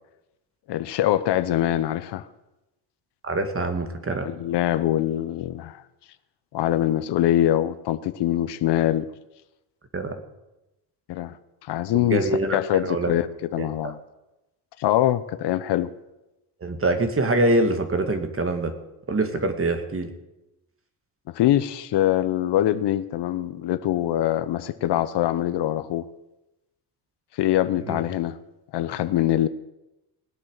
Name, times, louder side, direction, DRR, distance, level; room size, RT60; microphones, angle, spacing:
voice 1, 0.7-2.3 4.2-5.8 6.5-9.1 11.1-11.3 11.6-14.0 14.8-15.9 21.3-26.1 27.4-28.4 28.7-29.5, left 13 dB, 65° left, 13 dB, 0.9 m, -23 dB
voice 2, 3.2-4.3 9.9-10.2 11.9-13.1 13.6-13.9 16.6-18.7 19.1-20.1 27.9-28.0, right 2 dB, 30° right, 7 dB, 2.4 m, -24 dB
20.0 x 8.5 x 6.7 m, 0.97 s
supercardioid pair, 80°, 44 cm